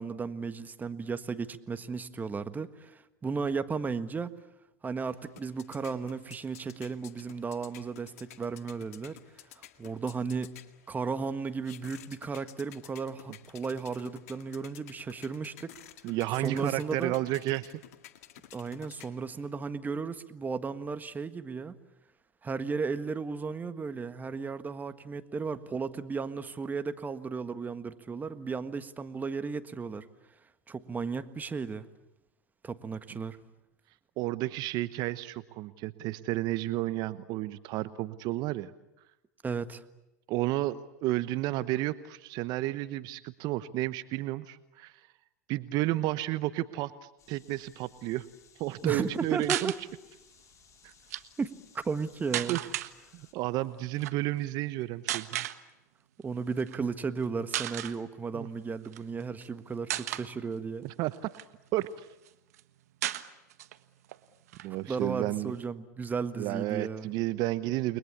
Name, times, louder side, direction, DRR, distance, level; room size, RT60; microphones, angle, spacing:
voice 1, 0.0-4.3 4.8-9.2 9.5-10.6 10.9-15.7 16.4-17.1 18.5-21.7 22.4-30.1 30.7-31.9 32.6-33.4 39.4-39.8 48.8-49.8 51.4-52.6 56.2-60.8 64.9-67.1, right 5 dB, 20° right, 11 dB, 1.6 m, -34 dB
sound 1, 5.0-19.5, left 12 dB, 70° left, 2.0 m, -53 dB
voice 2, 16.0-17.8 34.2-38.7 40.3-44.9 45.5-46.9 47.3-48.2 48.6-49.7 50.8-50.9 52.5-52.6 53.1-55.5 58.3-58.5 60.8-61.1 61.7-62.1 64.6-65.5 66.4-68.0, right 16 dB, 55° right, 14 dB, 1.0 m, -31 dB
sound 2, 47.2-53.3, left 8 dB, 40° left, 4.7 m, -61 dB
sound 3, 49.4-49.8 50.9-51.2 52.3-52.9 53.9-54.1 55.1-55.6 56.6-56.8 57.2-57.3 57.5-58.0 58.8-59.5 59.9-60.3 60.9-61.9 62.3-62.4 62.5-62.6 63.0-63.8 64.1-64.2 64.5-65.6, right 13 dB, 80° right, 1.4 m, -34 dB
30.0 x 22.0 x 8.5 m, 0.96 s
hypercardioid pair, 95°, 8 cm